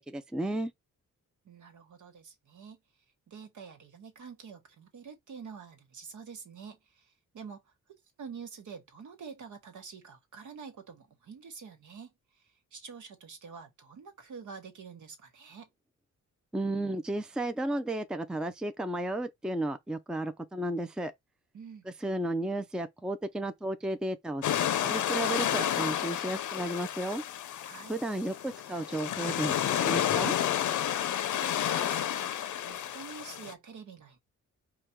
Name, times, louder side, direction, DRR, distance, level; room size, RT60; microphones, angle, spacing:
voice 1, 0.1-0.7 16.5-21.1 22.0-27.2 27.9-30.4, right 1 dB, 5° right, 0.5 m, -33 dB
voice 2, 1.4-2.8 3.3-7.6 8.2-12.4 12.7-15.7 21.5-21.9 27.6-27.9 31.3-34.2, right 6 dB, 70° right, 1.4 m, -47 dB
sound 1, 24.4-33.5, left 10 dB, 70° left, 0.6 m, -31 dB
5.1 x 2.3 x 4.5 m
wide cardioid pair, 125°, 31 cm